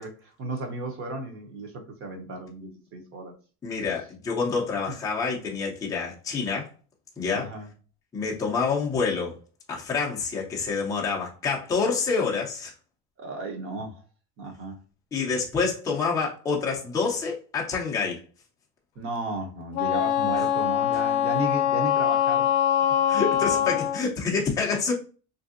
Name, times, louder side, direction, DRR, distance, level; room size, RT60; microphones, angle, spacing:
voice 1, 0.0-3.3 7.3-7.7 13.2-14.0 14.4-14.8 19.0-22.5 23.3-23.7, right 2 dB, 35° right, 0.7 m, -34 dB
voice 2, 3.6-6.7 7.2-7.5 8.1-9.3 9.7-12.7 15.1-18.2 23.1-24.9, left 5 dB, 10° left, 0.4 m, -27 dB
Wind instrument woodwind instrument, 19.7-24.0, left 10 dB, 70° left, 0.5 m, -23 dB
3.2 x 2.6 x 2.4 m
cardioid pair, 170°, 38 cm